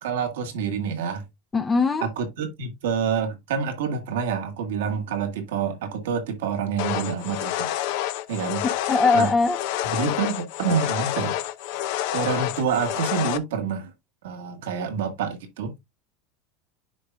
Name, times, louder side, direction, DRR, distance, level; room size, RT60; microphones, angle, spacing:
voice 1, 0.0-1.2 2.0-7.7 8.3-8.6 9.1-9.3 9.8-11.4 12.1-13.9 14.2-15.7, right 6 dB, 85° right, 1.6 m, -27 dB
voice 2, 1.5-2.1 8.6-9.6, left 4 dB, 20° left, 0.5 m, -21 dB
sound 1, 6.8-13.4, left 13 dB, 70° left, 0.6 m, -28 dB
9.9 x 4.9 x 2.3 m
supercardioid pair, 120°, 0 cm